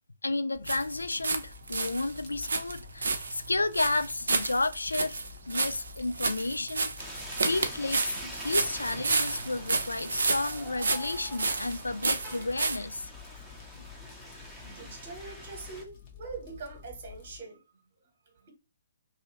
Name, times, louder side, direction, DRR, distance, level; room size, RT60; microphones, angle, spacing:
voice 1, 0.2-5.2 5.5-6.9 7.4-13.1, left 2 dB, 75° left, 0.3 m, -32 dB
Fire, 0.5-17.4, left 7 dB, 35° left, 0.9 m, -50 dB
sound 1, 0.7-1.4 1.7-12.8, right 3 dB, 65° right, 0.5 m, -31 dB
sound 2, 7.0-15.8, equal, ahead, 0.8 m, -45 dB
voice 2, 14.6-18.5, right 4 dB, 40° right, 1.1 m, -44 dB
2.7 x 2.5 x 2.8 m
figure-of-eight pair, 125°, 0 cm